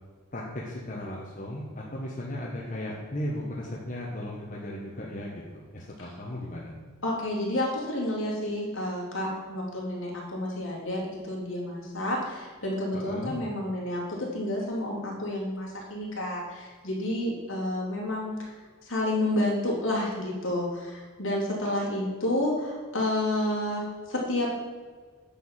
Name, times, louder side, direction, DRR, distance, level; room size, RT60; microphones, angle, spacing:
voice 1, 0.3-6.7 12.9-13.3, left 1 dB, 40° left, -4 dB, 1.3 m, -36 dB
voice 2, 7.0-18.6 18.8-24.5, left 1 dB, 65° left, -4 dB, 3.2 m, -30 dB
10.5 x 4.8 x 7.4 m, 1.5 s
head